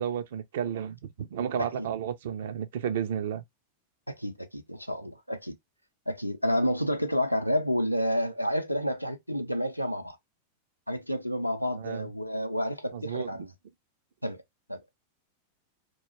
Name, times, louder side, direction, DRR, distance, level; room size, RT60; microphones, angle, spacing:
voice 1, 0.0-3.4 11.7-12.1 12.9-13.5, right 8 dB, 55° right, 0.4 m, -32 dB
voice 2, 4.1-5.6 6.1-10.2 10.9-13.5 14.2-14.4 14.7-14.8, equal, 90° left, 0.4 m, -30 dB
2.2 x 2.2 x 3.1 m
figure-of-eight pair, 90°, 0 cm